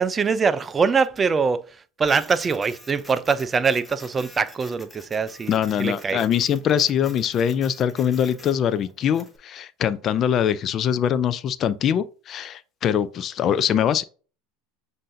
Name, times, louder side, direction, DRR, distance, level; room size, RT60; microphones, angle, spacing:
voice 1, 0.0-1.6 2.0-6.2, right 5 dB, 25° right, 0.4 m, -23 dB
Printer, 2.0-9.4, left 2 dB, 10° left, 1.0 m, -47 dB
voice 2, 5.5-14.0, left 9 dB, 40° left, 0.4 m, -23 dB
7.4 x 2.6 x 2.6 m
hypercardioid pair, 95°, 0 cm